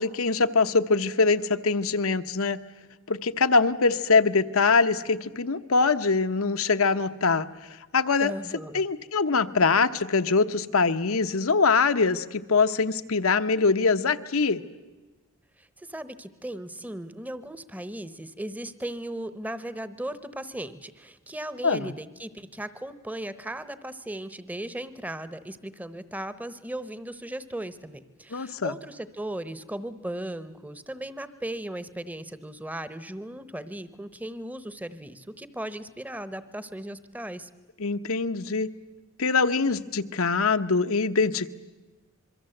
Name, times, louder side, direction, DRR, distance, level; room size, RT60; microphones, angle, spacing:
voice 1, 0.0-2.6 3.1-7.5 7.9-8.3 8.7-14.6 21.6-21.9 28.3-28.7 37.8-38.7 39.2-41.5, left 4 dB, 75° left, 10 dB, 0.9 m, -23 dB
voice 2, 8.2-8.9 15.6-37.5, right 1 dB, 5° right, 14 dB, 0.9 m, -37 dB
26.0 x 23.0 x 7.8 m, 1.2 s
head